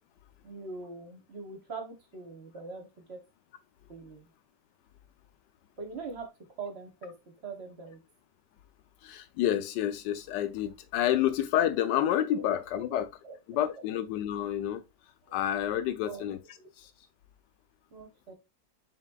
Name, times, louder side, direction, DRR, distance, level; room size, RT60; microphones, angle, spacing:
voice 1, 0.4-3.2 3.9-4.3 5.8-6.3 6.6-7.1 7.4-8.0 12.4-12.5 12.7-13.0 13.2-13.4 15.3-15.4 16.0-16.2 16.6-16.7 17.9-18.3, right 4 dB, 45° right, 1.0 m, -42 dB
voice 2, 9.0-13.1 13.5-14.8 15.3-16.4 16.8-16.9, left 11 dB, 80° left, 1.2 m, -29 dB
4.3 x 4.0 x 2.2 m
omnidirectional pair, 1.9 m